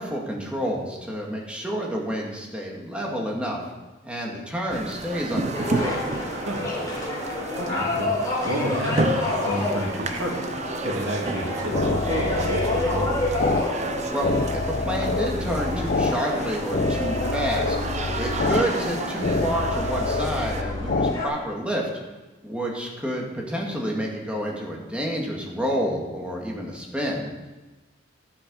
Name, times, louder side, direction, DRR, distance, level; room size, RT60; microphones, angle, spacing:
voice 1, 0.0-3.6 4.0-6.0 14.1-17.8 18.2-21.9 22.4-27.3, equal, 5° right, -2 dB, 2.2 m, -29 dB
sound 1, 4.7-20.6, right 3 dB, 35° right, 0.7 m, -32 dB
sound 2, 5.5-21.3, left 2 dB, 20° left, 3.7 m, -30 dB
voice 2, 7.6-8.1 8.4-10.5 10.8-13.1, right 1 dB, 80° right, -1 dB, 2.8 m, -30 dB
sound 3, 11.3-21.1, left 3 dB, 50° left, 0.8 m, -27 dB
12.0 x 8.8 x 5.5 m, 1.2 s
head